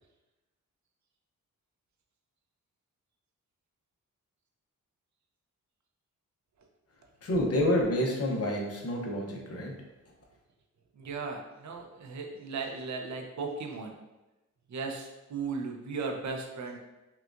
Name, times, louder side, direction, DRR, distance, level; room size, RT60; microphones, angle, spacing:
voice 1, 7.2-9.7, left 1 dB, 50° left, -1 dB, 0.8 m, -28 dB
voice 2, 10.9-14.0 14.7-16.8, right 4 dB, 60° right, 3 dB, 0.6 m, -36 dB
5.6 x 2.3 x 2.5 m, 1.0 s
wide cardioid pair, 155°, 32 cm